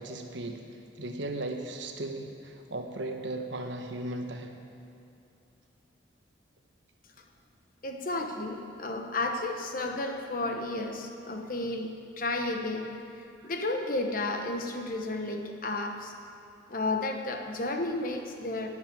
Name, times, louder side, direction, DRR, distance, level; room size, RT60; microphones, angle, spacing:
voice 1, 0.0-4.6, right 2 dB, 75° right, 4 dB, 1.2 m, -37 dB
voice 2, 7.8-12.9 13.4-16.1 16.7-18.7, left 2 dB, 45° left, 4 dB, 1.1 m, -32 dB
10.5 x 8.3 x 9.4 m, 2.7 s
head